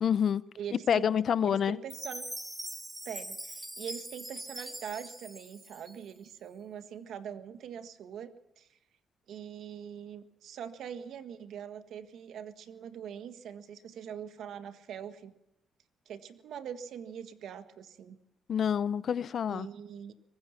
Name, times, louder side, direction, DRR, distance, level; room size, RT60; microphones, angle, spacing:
voice 1, 0.0-0.4 0.9-1.8 18.5-19.7, left 8 dB, 55° left, 0.7 m, -27 dB
voice 2, 0.6-1.1 1.4-2.3 3.0-8.7 9.3-15.3 16.0-18.2 19.5-20.1, right 8 dB, 70° right, 1.6 m, -43 dB
Chime, 1.9-6.3, right 1 dB, 10° right, 2.2 m, -42 dB
23.5 x 20.0 x 5.9 m
cardioid pair, 90°, 0 cm